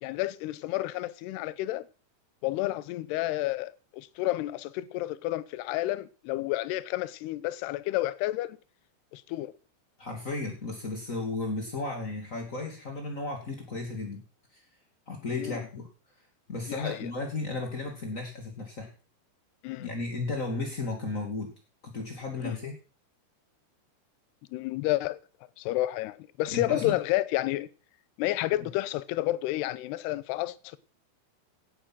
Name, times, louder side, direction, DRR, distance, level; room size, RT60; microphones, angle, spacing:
voice 1, 0.0-1.9 2.4-8.6 9.1-9.5 15.4-15.6 16.7-17.1 19.6-19.9 22.4-22.6 24.5-25.2 25.6-27.7 28.2-30.8, left 16 dB, 75° left, 2.6 m, -30 dB
voice 2, 10.0-14.2 14.5-14.7 15.1-15.9 16.5-18.9 19.8-21.5 21.8-22.7 26.5-26.9 28.6-28.7, left 3 dB, 30° left, 1.6 m, -34 dB
18.0 x 10.0 x 6.2 m
omnidirectional pair, 5.4 m